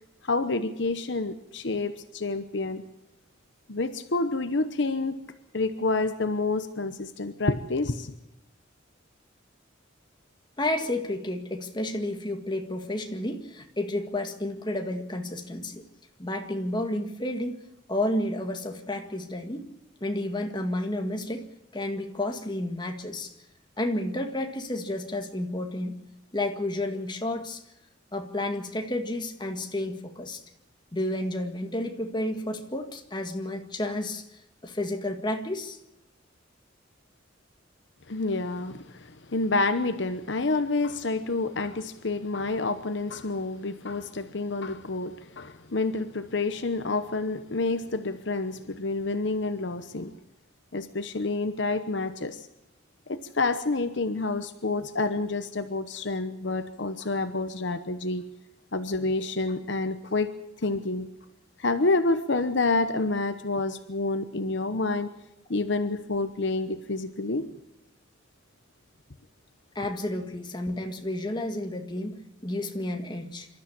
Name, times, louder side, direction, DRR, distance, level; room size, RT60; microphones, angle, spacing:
voice 1, 0.2-2.8 3.7-5.2 5.5-8.1 38.1-50.1 50.7-52.5 53.1-58.2 58.7-60.3 60.6-61.1 61.6-65.1 65.5-67.5, left 3 dB, 60° left, 10 dB, 1.0 m, -28 dB
voice 2, 10.6-15.8 16.2-17.6 17.9-19.7 20.0-21.5 21.7-23.3 23.8-26.0 26.3-27.6 28.1-30.4 30.9-34.2 34.6-35.8 69.8-73.5, left 1 dB, 25° left, 4 dB, 1.8 m, -31 dB
26.5 x 13.0 x 8.6 m, 0.87 s
head